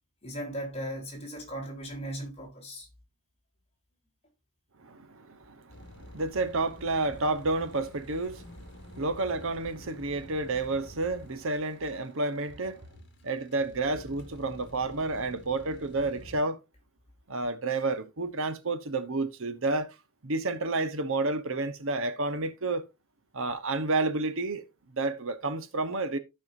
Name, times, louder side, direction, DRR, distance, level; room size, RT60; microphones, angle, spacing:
voice 1, 0.2-2.9, equal, 25° left, 3.6 m, -37 dB
voice 2, 4.8-12.8 13.2-16.6 17.3-19.9 20.2-22.9 23.3-24.6 24.9-26.2, right 3 dB, 60° right, 1.0 m, -30 dB
sound 1, 5.7-16.4, left 1 dB, 50° left, 1.9 m, -49 dB
sound 2, 7.1-8.3 8.9-10.0 10.7-11.8 12.5-13.6, equal, 30° right, 1.6 m, -54 dB
15.0 x 5.7 x 2.6 m
head